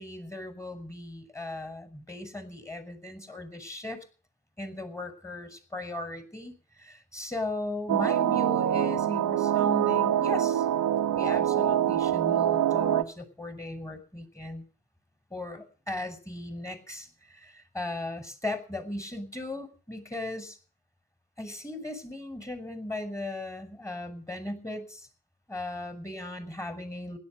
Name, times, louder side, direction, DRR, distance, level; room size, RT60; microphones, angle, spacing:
voice 1, 0.0-4.0 4.6-10.7 11.1-14.7 15.3-20.6 21.4-25.1 25.5-27.2, left 2 dB, 10° left, 9 dB, 6.0 m, -37 dB
sound 1, 7.9-13.0, right 10 dB, 55° right, 1.6 m, -25 dB
16.5 x 11.5 x 6.9 m, 0.37 s
hypercardioid pair, 50°, 35 cm